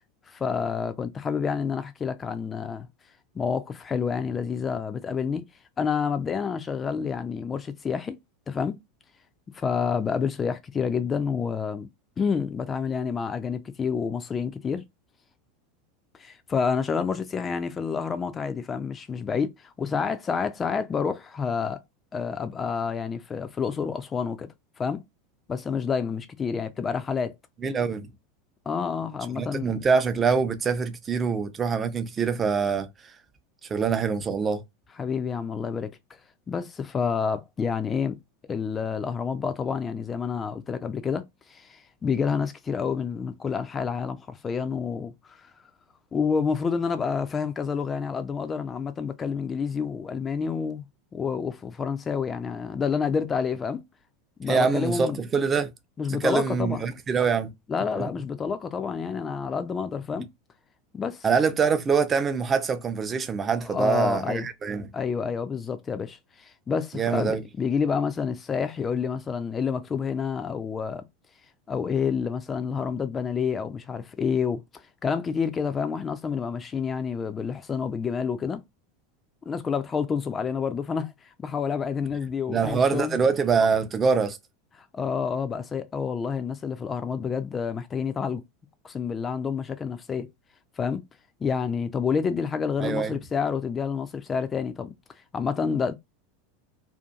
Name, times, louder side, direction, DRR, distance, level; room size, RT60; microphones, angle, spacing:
voice 1, 0.3-2.9 3.4-5.4 5.8-8.2 8.5-8.8 9.5-11.9 12.2-14.8 16.2-21.8 22.1-24.5 24.8-25.0 25.5-27.3 28.7-29.8 35.0-35.9 36.5-38.2 38.5-41.2 41.5-45.5 46.1-50.8 51.1-53.8 54.4-55.2 56.0-56.8 57.7-60.3 60.9-61.3 63.7-64.5 64.9-71.0 71.7-78.6 79.5-83.2 84.8-88.4 88.8-90.3 90.8-91.0 91.4-94.9 95.3-95.9, left 6 dB, 25° left, 0.4 m, -28 dB
voice 2, 27.6-28.1 29.3-33.1 33.7-34.6 54.4-55.7 56.1-57.5 58.0-58.1 61.2-64.9 66.9-67.4 82.5-84.4 92.8-93.1, right 5 dB, 25° right, 0.5 m, -24 dB
2.7 x 2.4 x 2.3 m
figure-of-eight pair, 85°, 0 cm